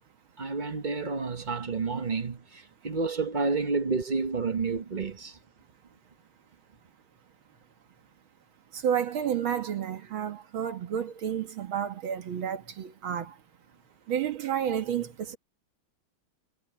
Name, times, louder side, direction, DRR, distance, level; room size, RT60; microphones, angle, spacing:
voice 1, 0.4-5.3, right 4 dB, 40° right, 0.7 m, -30 dB
voice 2, 8.7-13.3 14.1-15.4, right 9 dB, 70° right, 2.3 m, -30 dB
omnidirectional pair, 2.3 m